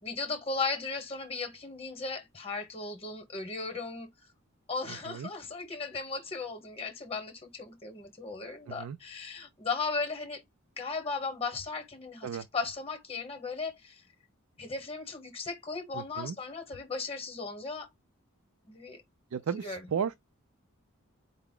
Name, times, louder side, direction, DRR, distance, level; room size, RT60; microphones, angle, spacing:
voice 1, 0.0-4.1 4.7-10.4 10.8-14.0 14.6-17.9 18.7-19.0 19.6-19.8, left 4 dB, 25° left, 1.0 m, -36 dB
voice 2, 4.9-5.3 8.7-9.0 12.2-12.5 15.9-16.4 19.3-20.1, right 7 dB, 80° right, 0.4 m, -34 dB
4.6 x 2.0 x 3.7 m
head